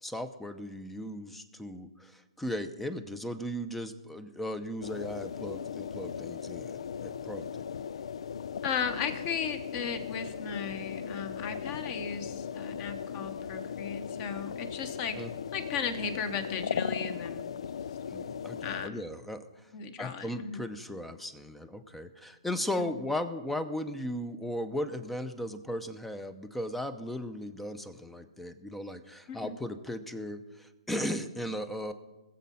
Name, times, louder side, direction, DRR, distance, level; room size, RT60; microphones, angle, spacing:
voice 1, 0.0-7.6 15.1-15.3 18.1-19.7 20.0-31.9, left 1 dB, 5° left, 11 dB, 0.7 m, -37 dB
sound 1, 4.8-18.9, left 7 dB, 75° left, 0.4 m, -38 dB
voice 2, 8.6-15.2 15.5-17.6 18.6-19.0 19.7-20.7 22.8-22.9 29.3-29.6, left 6 dB, 30° left, 9 dB, 1.3 m, -36 dB
20.0 x 7.4 x 5.6 m, 1.1 s
hypercardioid pair, 145°, 3 cm